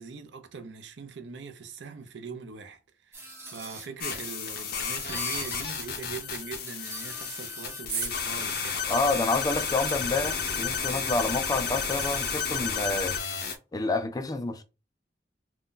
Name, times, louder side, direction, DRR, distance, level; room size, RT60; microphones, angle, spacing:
voice 1, 0.0-8.9, right 5 dB, 80° right, 0.5 m, -42 dB
sound 1, 3.1-4.3 5.0-5.9 6.2-6.3 6.7-7.9 8.3-8.7 9.7-9.8 10.1-11.3 11.8-12.9, right 2 dB, 15° right, 0.9 m, -43 dB
sound 2, 4.0-13.6, left 6 dB, 55° left, 0.6 m, -32 dB
sound 3, 7.9-8.2 8.6-8.7 9.3-11.0 11.9-12.0 12.2-12.3, right 4 dB, 60° right, 1.2 m, -37 dB
voice 2, 8.9-13.2 13.7-14.6, left 3 dB, 20° left, 0.3 m, -28 dB
2.6 x 2.3 x 3.6 m
head